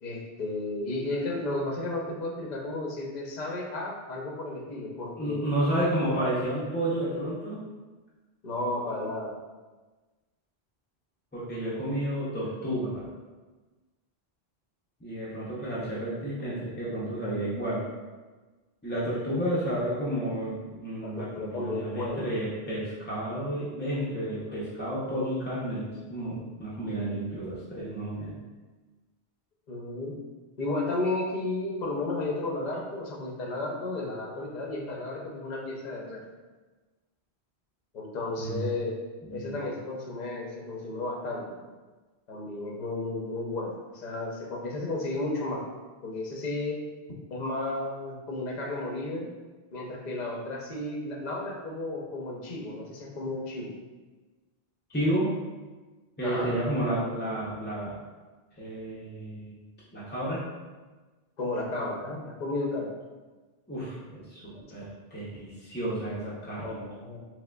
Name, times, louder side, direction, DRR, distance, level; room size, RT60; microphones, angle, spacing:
voice 1, 0.0-5.4 6.1-6.2 8.4-9.3 19.0-19.3 21.0-22.3 29.7-30.2 30.6-36.2 37.9-38.9 39.3-41.5 42.3-45.6 46.0-46.8 47.3-49.3 49.7-53.7 56.2-56.5 61.4-62.9 64.5-64.7 66.6-67.2, left 2 dB, 50° left, -1 dB, 0.7 m, -33 dB
voice 2, 5.2-7.6 11.3-13.1 15.0-17.8 18.8-28.3 38.4-38.6 39.3-39.6 54.9-55.3 56.2-57.9 58.6-59.6 59.9-60.4 63.7-64.4 64.7-66.8, right 1 dB, 15° left, -8 dB, 0.4 m, -31 dB
4.6 x 2.1 x 2.2 m, 1.3 s
omnidirectional pair, 1.1 m